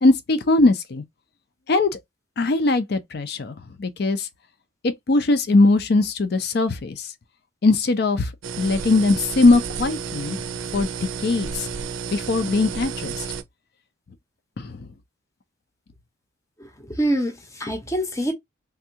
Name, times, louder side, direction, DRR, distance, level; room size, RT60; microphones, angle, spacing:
voice 1, 0.0-1.0 1.7-1.9 2.4-4.3 4.8-7.1 7.6-8.3 8.6-10.4 10.7-10.9 11.2-11.7 12.1-13.1 14.6-14.9, left 3 dB, 50° left, 0.5 m, -20 dB
sound 1, 8.4-13.4, right 6 dB, 80° right, 0.5 m, -31 dB
voice 2, 16.6-18.3, right 1 dB, 15° left, 0.7 m, -25 dB
3.5 x 2.3 x 2.7 m
head